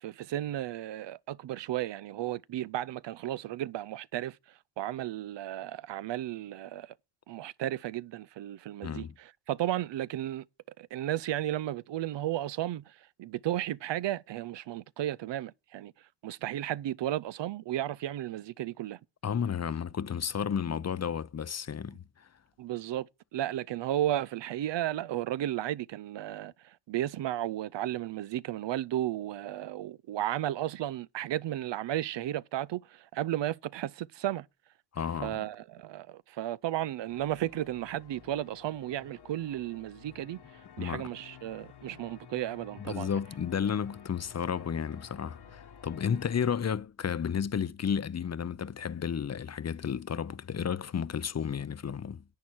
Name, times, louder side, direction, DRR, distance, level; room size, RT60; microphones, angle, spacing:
voice 1, 0.0-4.4 4.8-6.9 7.3-10.4 10.8-12.8 13.2-15.9 16.2-19.0 22.6-23.1 23.3-26.5 26.9-34.5 35.2-40.4 40.8-43.2, right 13 dB, 80° right, 0.5 m, -34 dB
voice 2, 8.8-9.1 19.2-22.3 34.9-35.4 40.8-41.1 42.8-52.2, left 7 dB, 40° left, 0.5 m, -32 dB
sound 1, 37.1-46.6, left 7 dB, 65° left, 1.3 m, -53 dB
10.5 x 8.6 x 4.5 m
cardioid pair, 85°, 43 cm